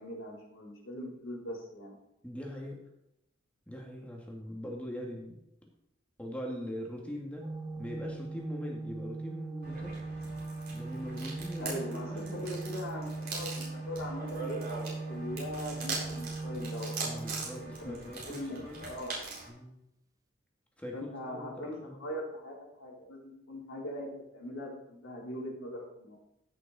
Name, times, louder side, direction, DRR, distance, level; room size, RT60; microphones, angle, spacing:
voice 1, 0.0-2.0 11.6-14.8 15.1-17.2 17.6-18.0 18.2-19.2 20.9-26.2, left 1 dB, 80° left, -4 dB, 4.0 m, -41 dB
voice 2, 2.2-2.8 3.7-5.4 6.2-7.5 7.8-10.0 10.7-12.5 17.0-18.8 19.5-19.8 20.8-22.0, equal, 5° left, -1 dB, 2.1 m, -42 dB
Organ, 7.4-18.3, right 3 dB, 15° right, 0.4 m, -40 dB
sound 1, 9.6-19.5, right 4 dB, 50° right, 4.3 m, -42 dB
14.5 x 6.5 x 4.3 m, 0.82 s
head